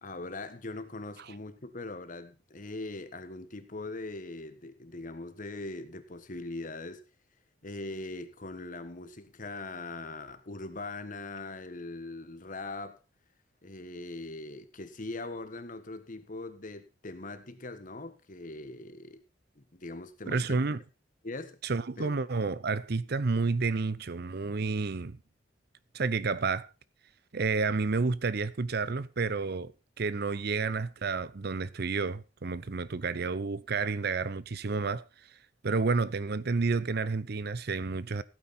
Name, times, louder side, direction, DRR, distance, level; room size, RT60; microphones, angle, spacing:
voice 1, 0.0-7.0 7.6-13.0 13.6-19.2 19.6-20.6 21.2-21.6 22.0-22.1, left 2 dB, 45° left, 1.5 m, -41 dB
voice 2, 20.3-20.8 21.6-25.2 25.9-26.7 27.3-29.7 30.0-35.0 35.6-38.2, right 4 dB, 60° right, 0.7 m, -30 dB
16.0 x 9.0 x 4.3 m
head